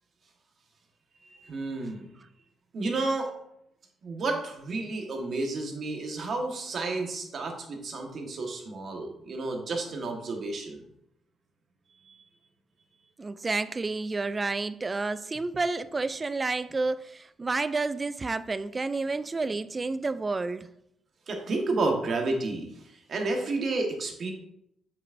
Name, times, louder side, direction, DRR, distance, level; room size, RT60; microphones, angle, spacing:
voice 1, 1.2-2.1 2.7-3.3 4.0-10.8 12.0-12.1 21.3-22.7 23.1-24.3, right 3 dB, 50° right, 1.4 m, -31 dB
voice 2, 13.2-20.7, right 3 dB, 25° right, 0.3 m, -30 dB
7.5 x 6.0 x 2.6 m
cardioid pair, 90°, 0 cm